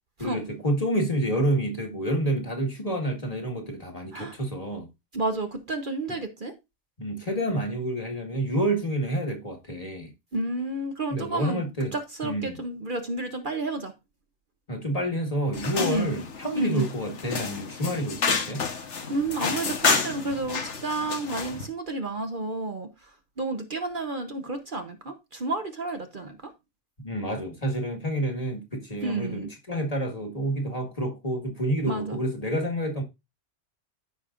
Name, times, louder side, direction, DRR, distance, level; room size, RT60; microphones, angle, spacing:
voice 1, 0.2-4.9 7.0-10.1 11.1-11.9 12.2-12.6 14.7-18.6 27.0-33.0, right 1 dB, 30° left, 1.8 m, -28 dB
voice 2, 5.1-6.5 10.3-13.9 15.8-16.2 16.6-16.9 19.1-22.9 23.4-26.5 29.0-29.5 31.9-32.2, right 2 dB, 45° right, 1.1 m, -31 dB
sound 1, 15.5-21.7, left 5 dB, 70° left, 1.5 m, -30 dB
14.0 x 5.3 x 2.5 m
omnidirectional pair, 1.2 m